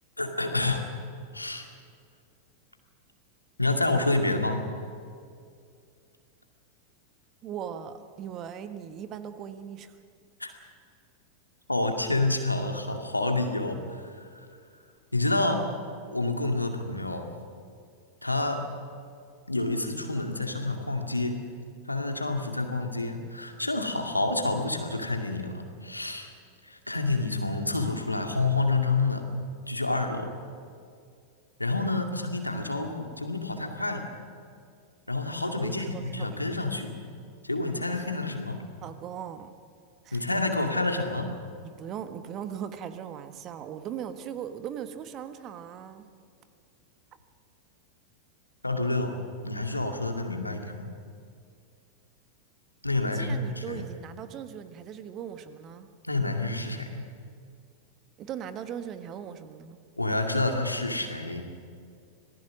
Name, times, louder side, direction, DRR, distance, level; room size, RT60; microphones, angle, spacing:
voice 1, 0.2-0.9 1.3-1.7 3.6-4.6 10.4-10.5 11.7-14.5 15.1-15.7 16.1-17.3 18.2-18.7 19.5-21.4 21.9-26.3 26.6-29.3 29.7-30.3 31.6-34.1 35.1-36.9 37.4-38.6 40.1-41.3 48.6-49.2 49.4-50.9 52.8-53.8 56.0-57.1 60.0-61.5, left 2 dB, 85° left, 4 dB, 2.3 m, -28 dB
voice 2, 7.4-10.0 35.6-36.4 38.8-39.5 40.0-40.4 41.6-46.1 53.0-55.9 58.2-59.8, right 9 dB, 35° right, 10 dB, 1.4 m, -39 dB
26.0 x 19.0 x 6.4 m, 2.3 s
figure-of-eight pair, 90°, 0 cm